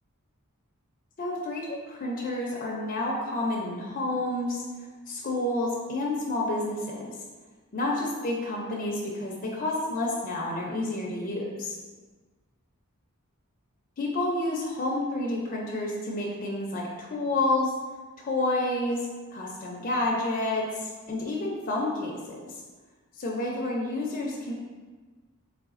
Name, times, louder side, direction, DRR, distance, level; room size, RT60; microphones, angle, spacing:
voice 1, 1.2-4.6 5.1-7.1 7.7-11.8 14.0-17.7 18.2-22.5 23.2-24.5, left 2 dB, 40° left, -3 dB, 0.5 m, -29 dB
3.9 x 3.1 x 2.5 m, 1.4 s
head